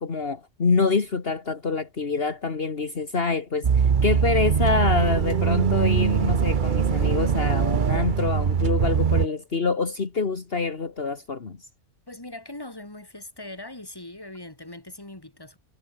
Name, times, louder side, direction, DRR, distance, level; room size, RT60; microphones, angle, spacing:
voice 1, 0.0-3.7 4.0-11.6, left 4 dB, 55° left, 1.9 m, -26 dB
sound 1, 3.6-9.3, right 7 dB, 45° right, 1.0 m, -22 dB
voice 2, 12.1-15.6, left 1 dB, 20° left, 3.1 m, -40 dB
omnidirectional pair, 1.2 m